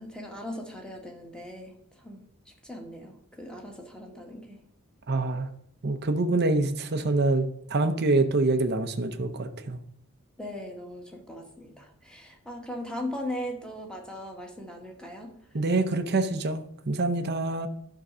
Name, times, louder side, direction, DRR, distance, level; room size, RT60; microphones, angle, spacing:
voice 1, 0.0-2.2 2.6-4.6 10.4-15.3, left 1 dB, 5° left, 1 dB, 1.5 m, -39 dB
voice 2, 5.1-5.5 5.8-9.8 15.5-17.7, right 2 dB, 50° right, 8 dB, 0.7 m, -26 dB
11.0 x 3.8 x 6.1 m, 0.68 s
head